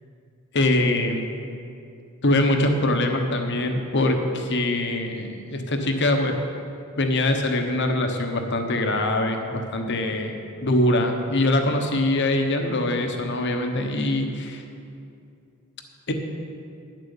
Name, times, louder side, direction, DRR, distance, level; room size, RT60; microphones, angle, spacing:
voice 1, 0.5-1.3 2.2-6.3 7.0-14.6 16.1-16.2, left 1 dB, 55° left, 4 dB, 1.1 m, -23 dB
10.0 x 7.7 x 7.1 m, 2.5 s
head